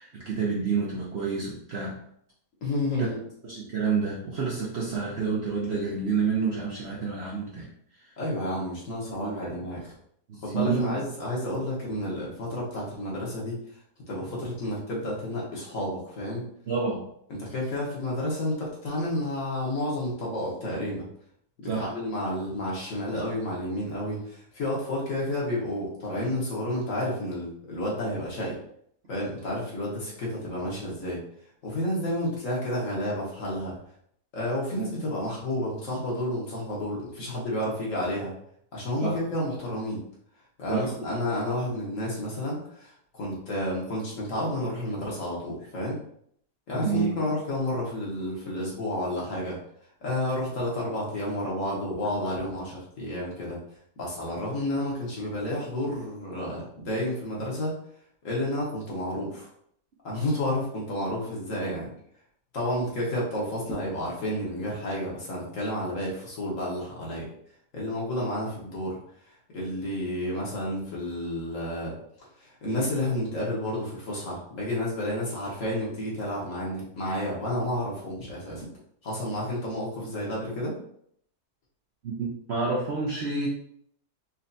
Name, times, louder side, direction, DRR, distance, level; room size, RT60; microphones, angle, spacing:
voice 1, 0.0-2.0 3.0-3.1 3.4-7.7 8.0-8.1 9.2-9.6 10.3-11.0 16.7-17.0 21.6-21.9 39.0-39.2 40.7-40.9 46.7-47.3 82.0-83.5, right 5 dB, 55° right, -4 dB, 0.8 m, -29 dB
voice 2, 2.6-3.2 8.2-9.9 10.4-13.6 14.1-16.4 17.4-21.0 21.8-28.6 29.1-31.2 31.6-33.7 34.3-38.3 38.7-40.0 40.6-46.0 46.7-49.6 50.0-53.6 54.0-57.7 58.2-59.5 60.0-61.9 62.5-67.3 67.7-69.0 69.2-78.6 79.0-80.7, left 1 dB, 55° left, -4 dB, 1.4 m, -31 dB
4.3 x 3.1 x 2.6 m, 0.67 s
omnidirectional pair, 1.7 m